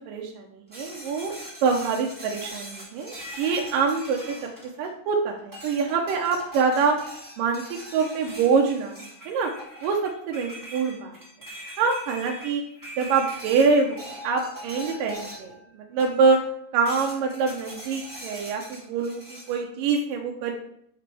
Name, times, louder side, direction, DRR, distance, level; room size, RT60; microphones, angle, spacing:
voice 1, 0.0-1.3 1.6-4.5 4.8-7.0 7.4-9.0 9.3-9.5 9.8-11.1 11.8-12.6 13.0-14.0 14.2-16.4 16.7-20.5, right 5 dB, 85° right, 1 dB, 2.4 m, -25 dB
sound 1, 0.7-5.1 5.5-15.6 16.0-16.5 16.8-19.6, equal, 10° right, 1.5 m, -42 dB
9.7 x 5.0 x 3.4 m, 0.71 s
omnidirectional pair, 3.8 m